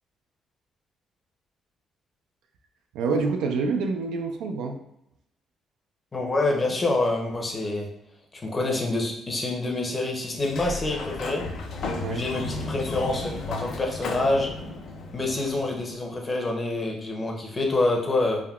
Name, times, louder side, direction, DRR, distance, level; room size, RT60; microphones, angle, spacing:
voice 1, 2.9-4.8 11.9-12.3, right 4 dB, 90° right, 4 dB, 0.4 m, -27 dB
voice 2, 6.1-7.9 8.4-11.4 12.1-14.5 15.1-18.4, left 2 dB, 30° left, 1 dB, 0.7 m, -26 dB
Sliding door, 10.3-16.0, left 3 dB, 70° left, 0.4 m, -34 dB
3.5 x 2.2 x 2.3 m, 0.82 s
cardioid pair, 90°, 0 cm